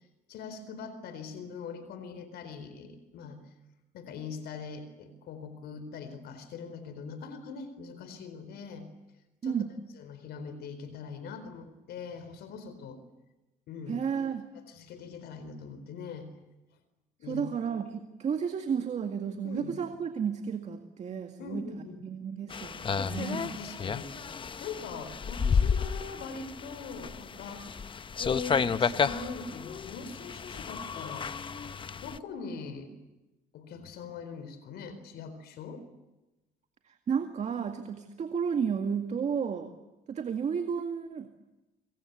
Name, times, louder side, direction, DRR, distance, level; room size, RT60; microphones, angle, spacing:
voice 1, 0.3-3.4 3.9-8.9 9.4-9.6 10.0-13.0 13.7-14.0 14.7-16.3 17.2-17.4 19.4-19.7 21.4-22.1 23.1-24.1 24.6-27.6 28.2-31.3 32.0-32.9 33.5-35.8, left 5 dB, 75° left, 11 dB, 4.4 m, -41 dB
voice 2, 13.9-14.5 17.2-23.6 36.8-39.7 40.1-41.3, right 7 dB, 40° right, 6 dB, 2.1 m, -32 dB
sound 1, 22.5-32.2, left 6 dB, 30° left, 0.9 m, -32 dB
26.0 x 26.0 x 8.2 m, 1.0 s
cardioid pair, 110°, 17 cm